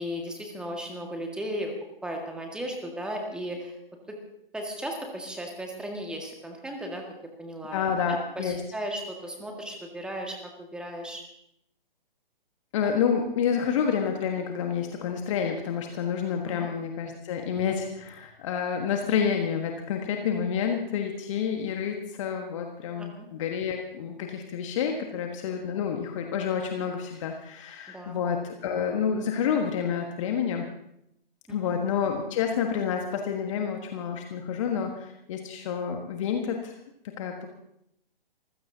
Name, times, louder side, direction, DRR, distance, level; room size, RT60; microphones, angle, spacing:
voice 1, 0.0-1.7 2.0-3.7 4.1-4.2 4.5-7.0 7.4-7.9 8.4-11.2 16.5-16.7 23.0-23.3 27.9-28.2 31.5-31.8, equal, 5° right, 1 dB, 1.8 m, -36 dB
voice 2, 7.7-8.6 12.7-30.7 31.5-36.8 37.0-37.5, left 7 dB, 35° left, 3 dB, 1.5 m, -29 dB
26.5 x 15.5 x 2.8 m, 0.77 s
figure-of-eight pair, 130°, 29 cm